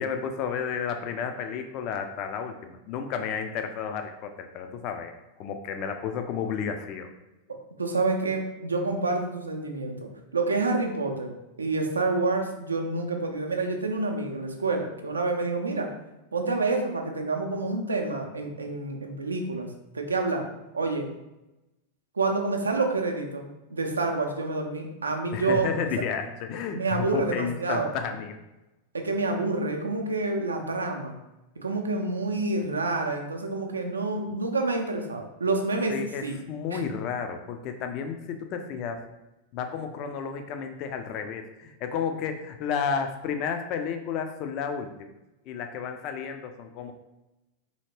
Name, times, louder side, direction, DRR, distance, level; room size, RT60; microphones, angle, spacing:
voice 1, 0.0-5.1 5.4-7.1 25.3-28.4 35.9-39.1 39.5-45.1 45.5-46.9, left 6 dB, 40° left, 6 dB, 0.3 m, -32 dB
voice 2, 7.8-15.9 16.3-20.5 20.7-21.1 22.2-25.7 26.0-26.1 26.8-27.9 28.9-31.2 31.6-36.3 36.7-36.8, right 3 dB, 75° right, 3 dB, 0.4 m, -28 dB
2.8 x 2.8 x 2.9 m, 0.98 s
figure-of-eight pair, 90°, 0 cm